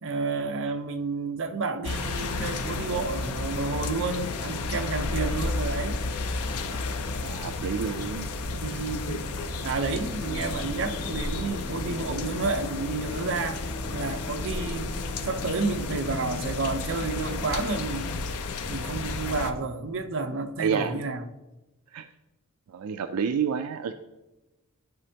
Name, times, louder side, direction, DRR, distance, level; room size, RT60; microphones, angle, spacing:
voice 1, 0.0-6.0 6.5-6.7 8.5-9.3 9.6-13.6 13.9-18.3 18.7-21.3, right 3 dB, 65° right, 6 dB, 0.7 m, -31 dB
sound 1, 1.8-19.5, left 3 dB, 80° left, 0.6 m, -32 dB
voice 2, 7.2-8.3 20.6-20.9 21.9-22.1 22.7-23.9, right 6 dB, 85° right, 8 dB, 0.4 m, -29 dB
sound 2, 10.2-18.7 19.0-19.1, left 1 dB, 50° left, 1.2 m, -42 dB
13.5 x 5.1 x 2.8 m, 1.0 s
head